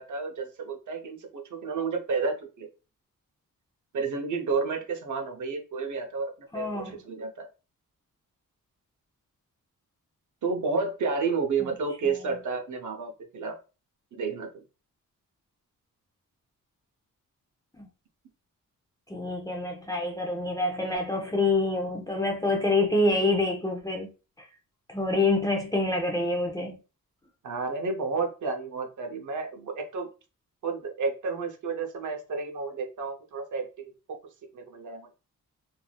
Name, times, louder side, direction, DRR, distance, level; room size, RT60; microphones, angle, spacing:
voice 1, 0.0-2.7 3.9-7.4 10.4-13.6 14.1-14.5 27.4-30.1 30.6-33.9 34.5-35.1, right 4 dB, 60° right, 0.7 m, -31 dB
voice 2, 6.5-7.0 17.7-17.9 19.1-24.1 24.9-26.8, left 2 dB, 10° left, 0.6 m, -26 dB
3.3 x 2.6 x 2.2 m
wide cardioid pair, 125°, 33 cm